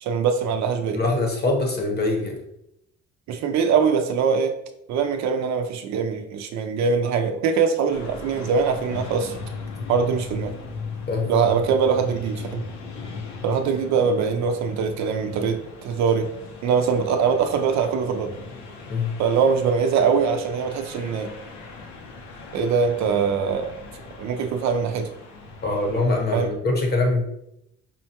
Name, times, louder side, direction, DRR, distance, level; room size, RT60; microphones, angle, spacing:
voice 1, 0.0-1.0 3.3-4.6 4.9-9.3 9.9-10.5 11.3-12.6 13.4-16.3 16.6-18.3 19.2-21.3 22.5-23.7 24.2-25.1 26.3-26.5, right 6 dB, 70° right, 7 dB, 0.5 m, -22 dB
voice 2, 0.9-2.4 11.1-11.3 18.9-19.1 25.6-27.3, left 2 dB, 35° left, 2 dB, 0.8 m, -23 dB
sound 1, 7.9-26.6, left 4 dB, 70° left, 0.7 m, -39 dB
5.4 x 2.2 x 2.8 m, 0.81 s
cardioid pair, 135°, 30 cm